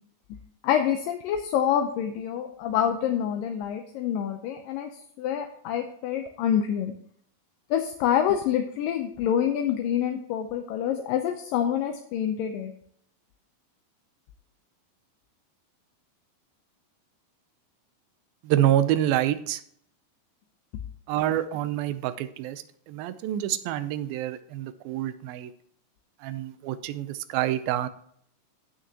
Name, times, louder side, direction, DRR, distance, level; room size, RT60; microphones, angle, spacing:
voice 1, 0.6-4.9 5.2-6.9 7.7-12.7, left 9 dB, 75° left, 5 dB, 2.2 m, -26 dB
voice 2, 18.4-19.6 21.1-25.5 26.2-27.9, right 12 dB, 80° right, 12 dB, 2.4 m, -27 dB
15.5 x 6.3 x 2.9 m, 0.65 s
omnidirectional pair, 4.4 m